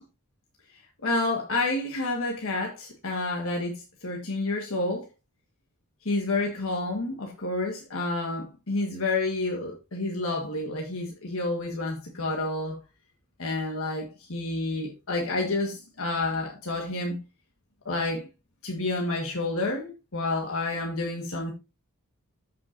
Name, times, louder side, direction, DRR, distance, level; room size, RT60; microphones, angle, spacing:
voice 1, 1.0-5.1 6.0-12.8 13.4-17.2 17.8-18.2 18.6-21.5, left 2 dB, 65° left, 1.6 m, -29 dB
13.5 x 5.9 x 2.6 m
head